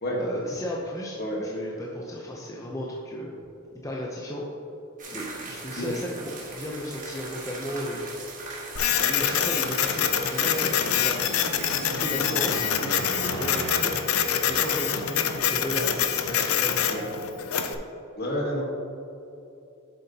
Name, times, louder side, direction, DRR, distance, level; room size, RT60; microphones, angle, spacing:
voice 1, 0.2-3.4 3.8-4.5 5.1-8.1 9.1-11.2 11.9-14.0 14.4-16.9, left 1 dB, 15° left, -3 dB, 0.6 m, -34 dB
sound 1, 5.0-11.9, right 3 dB, 40° right, 1.4 m, -39 dB
Printer, 8.8-17.7, left 8 dB, 80° left, 0.5 m, -25 dB
sound 2, 10.2-15.1, right 3 dB, 80° right, 0.5 m, -38 dB
voice 2, 18.2-18.6, equal, 50° left, -1 dB, 1.4 m, -29 dB
7.8 x 7.1 x 2.8 m, 2.8 s
head